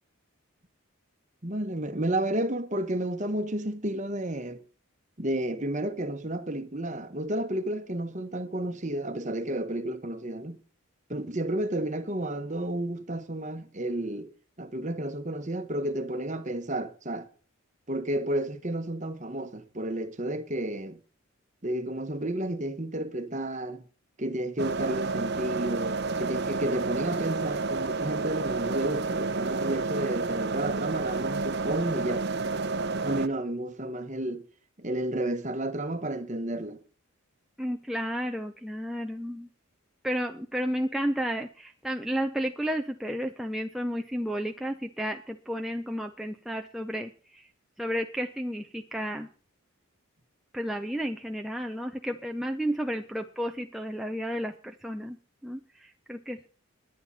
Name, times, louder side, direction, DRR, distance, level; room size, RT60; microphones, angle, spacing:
voice 1, 1.4-4.6 5.2-10.6 11.1-14.3 14.6-17.3 17.9-21.0 21.6-23.8 24.2-32.2 33.0-34.4 34.8-36.8, right 1 dB, 35° right, 1.2 m, -31 dB
sound 1, 24.6-33.3, right 3 dB, 50° right, 0.8 m, -30 dB
voice 2, 37.6-39.5 40.0-47.5 47.8-49.3 50.5-55.2 55.4-56.5, equal, ahead, 0.6 m, -32 dB
21.0 x 8.7 x 4.2 m
head